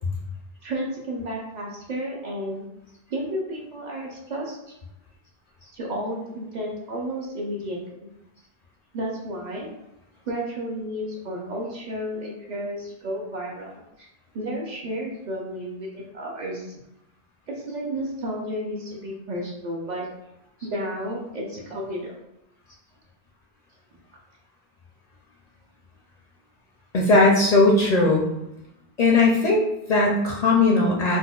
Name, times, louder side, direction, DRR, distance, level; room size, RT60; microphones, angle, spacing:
voice 1, 0.6-2.6 3.1-4.6 5.7-8.1 8.9-9.7 10.3-14.1 14.3-16.8 17.5-20.1 20.6-22.1, equal, 55° right, -2 dB, 0.6 m, -32 dB
voice 2, 26.9-28.3 29.0-31.2, left 2 dB, 55° left, -3 dB, 0.5 m, -18 dB
4.0 x 2.0 x 2.3 m, 0.87 s
omnidirectional pair, 1.0 m